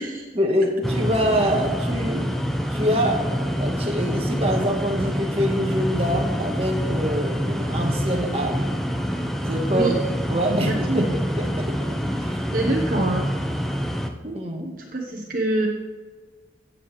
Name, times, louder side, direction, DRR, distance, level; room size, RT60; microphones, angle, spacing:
voice 1, 0.3-2.4 2.7-8.8 9.4-9.9 10.3-12.7 14.2-14.8, equal, 30° right, 1 dB, 1.4 m, -25 dB
sound 1, 0.8-14.1, equal, ahead, 0.6 m, -26 dB
voice 2, 10.5-11.1 12.5-13.3 14.9-15.7, right 2 dB, 50° right, -1 dB, 1.2 m, -25 dB
15.0 x 7.9 x 3.3 m, 1.5 s
head